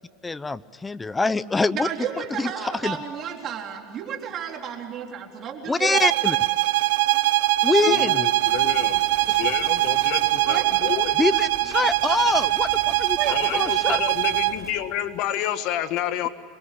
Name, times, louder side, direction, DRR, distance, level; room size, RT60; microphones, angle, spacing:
voice 1, 0.2-1.9 2.4-3.0 5.7-6.4 7.6-8.3 11.2-14.0, left 3 dB, 15° left, 17 dB, 0.7 m, -25 dB
voice 2, 1.7-6.1 10.5-10.6 13.2-13.6, right 8 dB, 40° right, 2 dB, 3.8 m, -32 dB
sound 1, 5.9-14.6, right 18 dB, 80° right, 1.0 m, -22 dB
voice 3, 7.8-9.0 9.3-11.2 13.3-16.3, left 11 dB, 55° left, 9 dB, 1.9 m, -29 dB
sound 2, 8.4-14.7, right 2 dB, 5° right, 6.2 m, -45 dB
26.5 x 22.0 x 8.6 m, 2.3 s
supercardioid pair, 125°, 0 cm